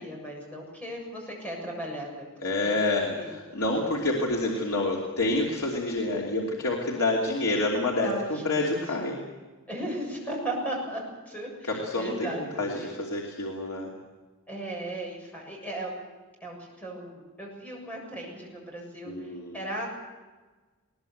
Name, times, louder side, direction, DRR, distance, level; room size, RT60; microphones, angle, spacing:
voice 1, 0.0-2.3 2.6-2.8 3.2-3.4 8.0-9.0 9.7-12.9 14.5-16.0 16.4-19.9, right 1 dB, 5° left, -1 dB, 7.2 m, -36 dB
voice 2, 2.4-9.2 11.8-13.9 19.1-19.6, left 2 dB, 85° left, -2 dB, 3.0 m, -28 dB
21.0 x 19.0 x 8.0 m, 1.3 s
head